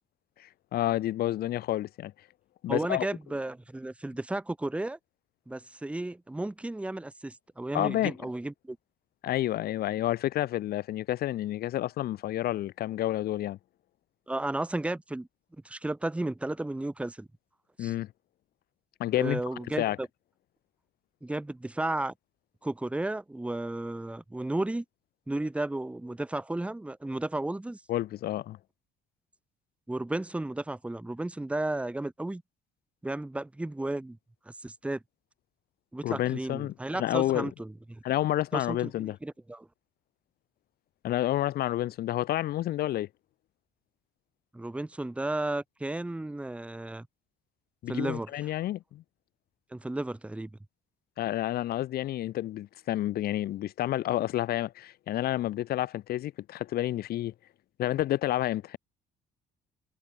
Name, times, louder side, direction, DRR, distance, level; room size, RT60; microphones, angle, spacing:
voice 1, 0.4-2.1 2.6-3.1 7.7-8.1 9.2-13.6 17.8-18.1 19.0-19.4 19.8-20.0 27.9-28.6 36.0-37.5 38.0-39.2 41.0-43.1 47.8-49.0 51.2-57.3 57.8-58.8, left 14 dB, 65° left, 1.3 m, -29 dB
voice 2, 2.7-5.0 5.5-8.8 14.3-15.3 15.6-17.3 17.8-17.9 19.1-20.1 21.2-22.1 22.6-24.8 25.3-27.8 29.9-32.4 33.0-34.2 34.5-35.0 35.9-38.0 38.5-38.9 39.2-39.7 44.5-47.1 47.9-48.3 49.7-50.5, right 2 dB, 5° right, 1.1 m, -33 dB
cardioid pair, 110°, 17 cm